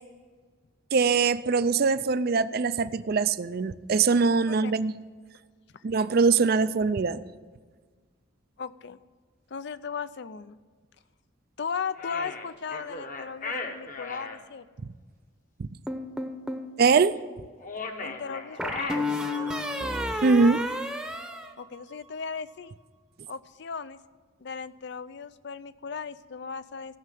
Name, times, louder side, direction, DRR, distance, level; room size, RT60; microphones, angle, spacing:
voice 1, 0.9-4.9 5.8-7.2 15.6-15.7 16.8-17.2 20.2-20.6, right 4 dB, 50° right, 14 dB, 0.4 m, -22 dB
voice 2, 8.6-9.0 9.5-10.6 11.6-14.7 18.0-19.3 21.6-22.7 23.3-24.0 24.4-27.0, left 6 dB, 60° left, 15 dB, 0.5 m, -37 dB
sound 1, 12.0-14.4 17.6-19.7, left 3 dB, 40° left, 1.1 m, -37 dB
sound 2, 15.9-16.7 18.6-22.2, left 1 dB, 5° right, 0.8 m, -32 dB
14.5 x 6.7 x 9.2 m, 1.5 s
head